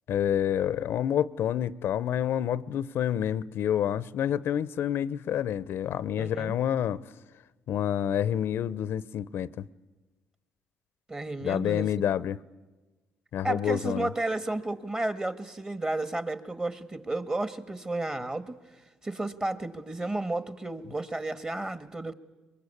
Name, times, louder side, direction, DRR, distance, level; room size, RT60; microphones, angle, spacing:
voice 1, 0.1-7.0 7.7-9.6 11.4-12.4 13.3-14.1, left 10 dB, 70° left, 0.7 m, -28 dB
voice 2, 6.2-6.5 11.1-11.9 13.4-18.6 19.0-22.1, right 2 dB, 20° right, 1.7 m, -32 dB
24.0 x 22.0 x 8.5 m
supercardioid pair, 75°, 4 cm